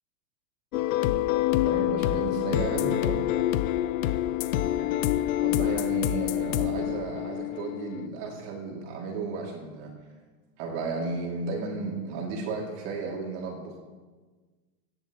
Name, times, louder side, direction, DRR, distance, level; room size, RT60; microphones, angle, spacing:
sound 1, 0.7-8.1, left 14 dB, 55° left, 0.6 m, -26 dB
voice 1, 1.5-3.3 5.4-9.9 10.6-13.8, right 4 dB, 45° right, -1 dB, 2.7 m, -34 dB
28.5 x 11.0 x 3.0 m, 1.4 s
supercardioid pair, 170°, 50 cm